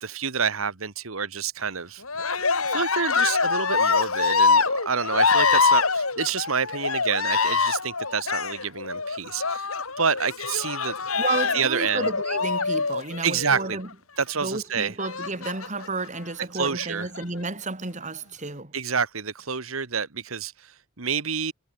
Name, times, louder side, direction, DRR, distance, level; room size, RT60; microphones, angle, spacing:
voice 1, 0.0-2.0 2.6-9.7 10.0-11.0 11.5-12.1 13.2-13.8 14.2-15.0 16.5-17.1 18.7-21.5, right 6 dB, 70° right, 1.6 m, -28 dB
Cheering, 2.0-13.7 15.0-15.9 16.6-17.2, left 4 dB, 80° left, 5.7 m, -24 dB
voice 2, 11.2-13.9 14.4-18.7, right 3 dB, 35° right, 3.3 m, -31 dB
head